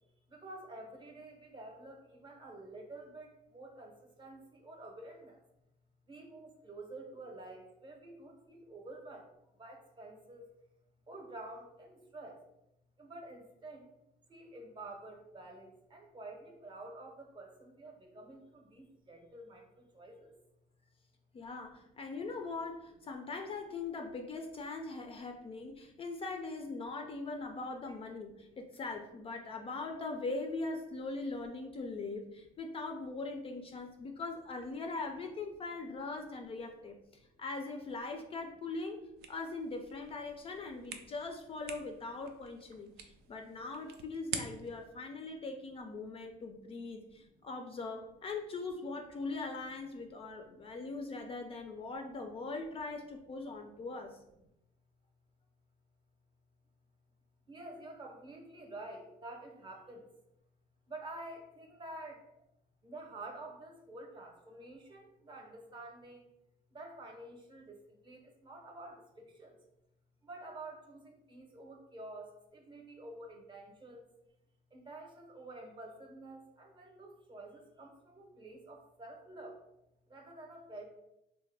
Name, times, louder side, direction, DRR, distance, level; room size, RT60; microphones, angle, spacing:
voice 1, 0.3-5.4 6.1-10.5 11.1-12.4 13.0-13.9 14.3-20.4 27.9-28.0 43.0-43.3 47.0-47.4 50.4-50.7 57.5-60.1 60.9-62.3 62.8-66.3 66.7-69.6 70.2-74.1 74.7-79.6 80.1-80.8, right 2 dB, 30° right, 2 dB, 0.7 m, -49 dB
voice 2, 21.3-39.0 39.3-54.2, left 3 dB, 35° left, 4 dB, 0.4 m, -41 dB
sound 1, 39.2-44.9, right 7 dB, 70° right, 0.4 m, -47 dB
3.2 x 2.1 x 3.3 m, 0.87 s
cardioid pair, 110°, 17 cm